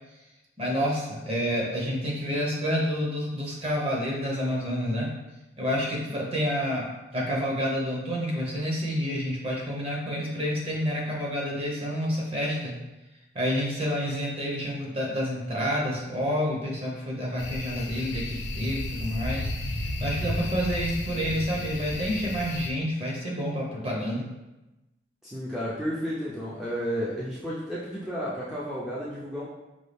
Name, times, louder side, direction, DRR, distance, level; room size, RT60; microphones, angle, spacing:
voice 1, 0.6-5.1 5.6-12.8 13.3-24.3, equal, 30° right, -3 dB, 0.8 m, -29 dB
sound 1, 17.4-22.7, left 1 dB, 80° left, 0.6 m, -33 dB
voice 2, 25.2-29.4, equal, ahead, -9 dB, 0.5 m, -32 dB
5.3 x 2.3 x 3.3 m, 1.0 s
head